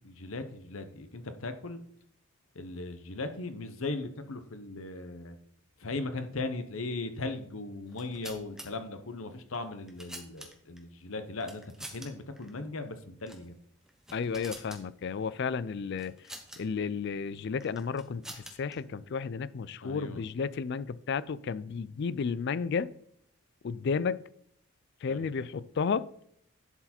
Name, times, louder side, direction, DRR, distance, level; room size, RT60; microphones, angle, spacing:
voice 1, 0.0-1.8 2.5-5.4 5.8-13.5 19.8-20.2 25.1-25.3, left 2 dB, 65° left, 0.9 m, -38 dB
sound 1, 7.9-8.7 9.5-10.8 11.4-12.1 12.4-12.5 13.2-13.5 13.8-14.8 16.0-16.6 17.6-18.7, right 1 dB, ahead, 1.0 m, -46 dB
voice 2, 14.1-16.1 16.6-22.9 23.6-24.2 25.0-26.1, left 5 dB, 50° left, 0.3 m, -32 dB
11.0 x 4.7 x 4.3 m
head